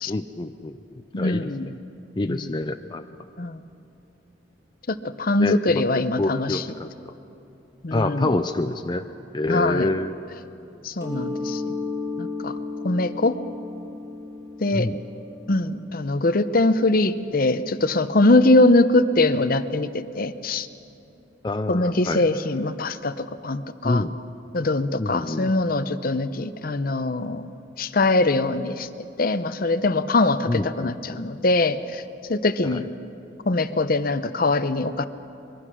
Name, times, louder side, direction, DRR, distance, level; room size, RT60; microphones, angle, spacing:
voice 1, 0.1-0.8 1.2-1.7 2.2-3.0 5.4-7.1 7.9-9.0 9.3-10.1 14.7-15.0 21.4-22.2 23.8-24.2 25.0-25.5 30.5-31.2 32.6-32.8, left 2 dB, 25° left, 6 dB, 0.5 m, -27 dB
voice 2, 1.1-1.7 2.3-2.5 3.4-3.6 4.9-6.7 7.8-8.3 9.5-9.9 10.8-11.8 12.2-12.6 12.8-13.4 14.6-14.9 15.5-20.7 21.7-24.0 24.5-27.5 27.8-28.9 29.2-32.0 32.3-32.8 33.5-35.1, left 2 dB, 50° left, 11 dB, 0.8 m, -22 dB
Mallet percussion, 11.0-16.5, left 3 dB, 15° right, 5.2 m, -34 dB
25.0 x 22.5 x 6.2 m, 2.8 s
head